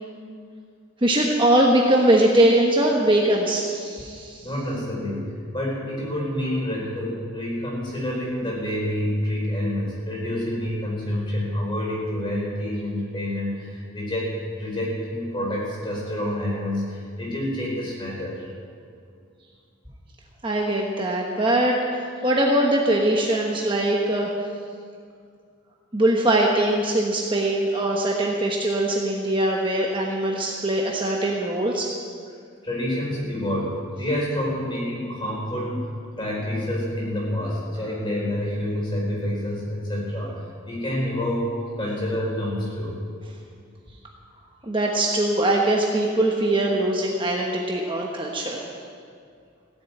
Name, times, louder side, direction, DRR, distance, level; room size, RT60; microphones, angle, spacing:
voice 1, 1.0-4.4 20.4-24.3 25.9-31.9 44.6-48.7, right 1 dB, 25° right, -1 dB, 1.1 m, -21 dB
voice 2, 4.4-18.5 32.6-35.9 36.2-40.3 40.7-43.0, left 1 dB, 25° left, -4 dB, 4.7 m, -28 dB
16.5 x 7.9 x 9.0 m, 2.2 s
head